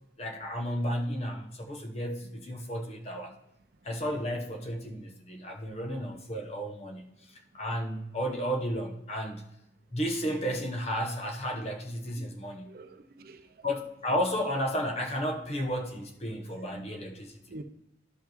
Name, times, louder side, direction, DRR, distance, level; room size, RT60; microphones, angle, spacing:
voice 1, 0.2-3.3 3.8-7.1 7.5-9.4 9.9-12.7 13.6-17.3, equal, 35° left, 0.9 m, -33 dB
voice 2, 12.2-13.5 16.7-17.1 17.5-17.6, right 2 dB, 55° right, 0.5 m, -48 dB
11.5 x 5.5 x 3.0 m
head